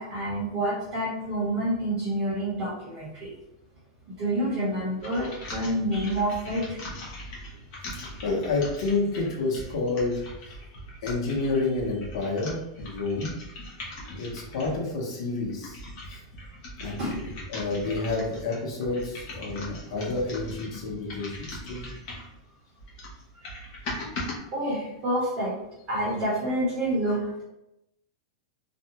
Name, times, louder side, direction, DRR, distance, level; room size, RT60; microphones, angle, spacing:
voice 1, 0.0-3.3 4.2-6.8 17.0-17.2 24.5-25.5 25.9-27.4, right 1 dB, 25° right, -8 dB, 0.9 m, -28 dB
sound 1, 5.0-14.9 15.4-22.4 22.8-24.4, left 1 dB, 40° left, 0.7 m, -40 dB
voice 2, 7.9-10.6 11.0-13.3 14.1-15.8 16.1-16.2 16.8-21.8, left 3 dB, 65° left, -2 dB, 0.9 m, -29 dB
2.5 x 2.2 x 2.9 m, 0.87 s
supercardioid pair, 170°, 3 cm